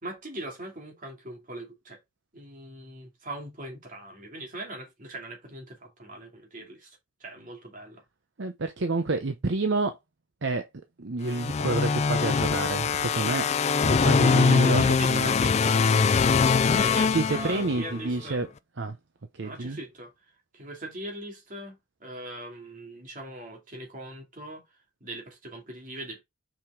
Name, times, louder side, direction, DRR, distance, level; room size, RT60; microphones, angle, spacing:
voice 1, 0.0-2.0 2.3-8.0 14.3-15.8 16.7-18.4 19.4-20.1 20.5-24.6 25.0-26.2, right 1 dB, 40° right, 2.5 m, -40 dB
voice 2, 8.4-10.0 10.4-10.7 11.0-13.5 13.8-15.3 17.1-18.5 18.8-19.0 19.3-19.8, right 3 dB, 55° right, 0.7 m, -28 dB
sound 1, 11.3-18.0, left 5 dB, 30° left, 0.3 m, -23 dB
5.8 x 5.1 x 3.7 m
head